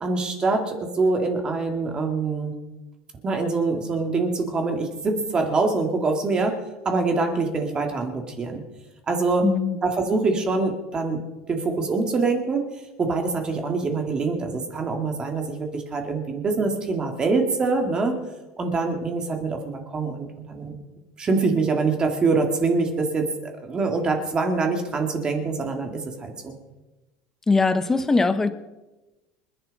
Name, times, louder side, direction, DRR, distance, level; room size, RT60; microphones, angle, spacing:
voice 1, 0.0-2.5 3.2-6.6 6.8-8.6 9.1-9.4 9.8-11.2 11.5-18.2 18.6-20.8 21.2-23.3 23.6-26.6, right 3 dB, 20° right, 3 dB, 2.2 m, -24 dB
voice 2, 9.4-9.8 27.5-28.5, left 3 dB, 10° left, 11 dB, 0.9 m, -21 dB
27.0 x 11.0 x 4.1 m, 1.1 s
cardioid pair, 155°, 4 cm